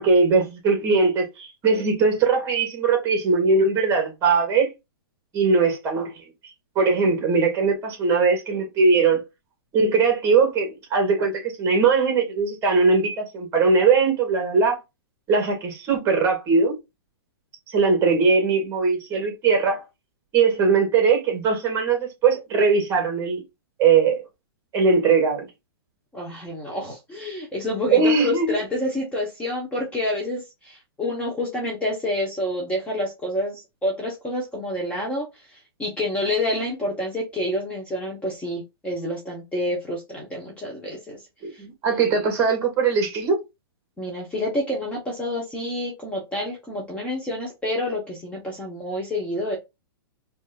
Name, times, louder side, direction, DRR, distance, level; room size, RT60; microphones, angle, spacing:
voice 1, 0.0-4.7 5.3-6.1 6.8-9.2 9.7-14.8 15.3-16.7 17.7-19.8 20.3-23.4 23.8-24.2 24.7-25.5 27.9-28.5 41.4-43.4, right 4 dB, 25° right, 2.0 m, -20 dB
voice 2, 26.1-41.2 41.5-41.6 44.0-49.6, left 1 dB, 10° left, 1.1 m, -28 dB
5.2 x 2.7 x 2.5 m
hypercardioid pair, 145°, 13 cm